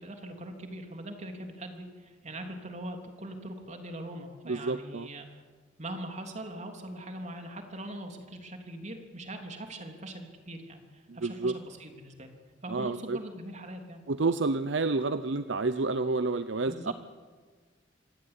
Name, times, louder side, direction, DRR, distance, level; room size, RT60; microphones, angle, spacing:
voice 1, 0.0-5.4 5.8-12.3 12.6-14.0 16.7-16.9, right 1 dB, 40° right, 4 dB, 3.3 m, -41 dB
voice 2, 4.5-5.1 11.1-11.5 12.7-13.2 14.1-16.9, right 3 dB, 70° right, 12 dB, 0.7 m, -29 dB
26.0 x 16.5 x 9.8 m, 1.5 s
head